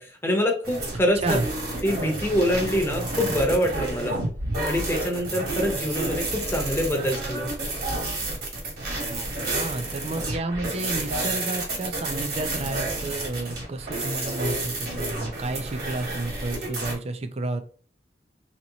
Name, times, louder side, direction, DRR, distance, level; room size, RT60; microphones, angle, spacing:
voice 1, 0.0-1.4 1.8-4.2 4.6-7.5, equal, 15° left, 2 dB, 0.9 m, -25 dB
sound 1, 0.6-16.9, right 2 dB, 55° right, 1.7 m, -30 dB
voice 2, 9.5-17.6, right 2 dB, 35° right, 8 dB, 0.5 m, -31 dB
3.0 x 2.9 x 3.9 m, 0.43 s
head